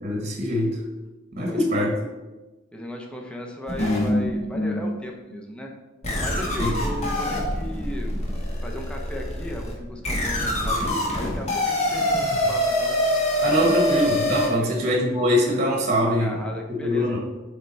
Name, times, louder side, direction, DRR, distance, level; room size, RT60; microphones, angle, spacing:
voice 1, 0.0-0.8 1.3-1.9 6.6-6.7 13.4-16.4 16.8-17.2, left 1 dB, 35° right, 0 dB, 1.1 m, -23 dB
voice 2, 1.4-1.9 2.7-5.7 6.2-8.3 8.6-13.0 14.5-14.9 16.0-17.2, equal, 5° left, 1 dB, 0.6 m, -36 dB
sound 1, 3.7-4.8 5.4-5.5 6.0-14.5, left 1 dB, 30° left, 1.3 m, -25 dB
7.3 x 3.4 x 4.1 m, 1.2 s
head